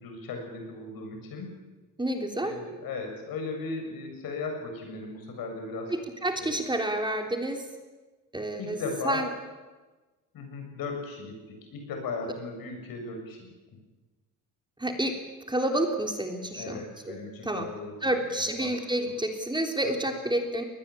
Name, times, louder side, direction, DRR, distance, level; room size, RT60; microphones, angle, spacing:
voice 1, 0.0-1.5 2.4-5.9 6.4-6.6 8.6-9.2 10.3-13.5 16.5-18.7 19.1-19.2, left 3 dB, 70° left, 3 dB, 7.6 m, -37 dB
voice 2, 2.0-2.5 5.9-7.6 8.3-8.8 9.0-9.3 14.8-15.1 15.5-16.8 17.1-17.2 17.4-17.7 18.0-20.6, right 1 dB, 10° right, 4 dB, 3.6 m, -29 dB
22.0 x 19.0 x 8.6 m, 1.2 s
cardioid pair, 80°, 36 cm